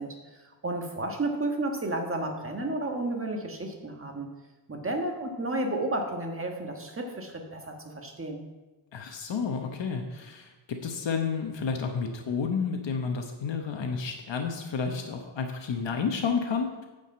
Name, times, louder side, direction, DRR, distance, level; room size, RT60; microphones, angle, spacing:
voice 1, 0.0-4.3 4.7-8.4, right 2 dB, 30° right, 2 dB, 1.4 m, -32 dB
voice 2, 8.9-16.9, left 5 dB, 75° left, 4 dB, 1.1 m, -31 dB
9.8 x 5.1 x 7.5 m, 1.1 s
wide cardioid pair, 135°, 44 cm